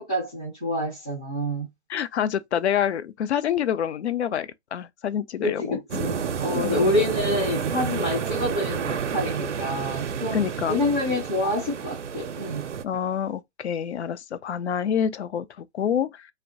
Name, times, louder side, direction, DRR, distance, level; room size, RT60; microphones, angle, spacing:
voice 1, 0.0-1.7 5.4-10.4 10.7-12.6, left 1 dB, 5° left, 0.3 m, -27 dB
voice 2, 1.9-6.1 6.5-6.9 10.3-10.8 12.8-16.3, left 9 dB, 70° left, 0.5 m, -27 dB
sound 1, 5.9-12.8, right 7 dB, 90° right, 0.5 m, -30 dB
2.4 x 2.1 x 2.5 m
figure-of-eight pair, 135°, 35 cm